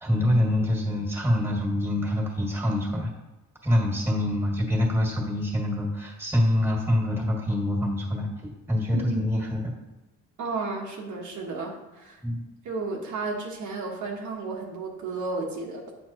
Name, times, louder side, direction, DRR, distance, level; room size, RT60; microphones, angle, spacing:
voice 1, 0.0-3.1 3.6-8.3 8.7-9.6 12.2-12.4, left 1 dB, 10° right, -2 dB, 2.1 m, -25 dB
voice 2, 8.9-9.3 10.4-12.2 12.6-15.8, right 3 dB, 75° right, -2 dB, 1.3 m, -33 dB
7.9 x 6.4 x 3.0 m, 1.1 s
cardioid pair, 90°, 30 cm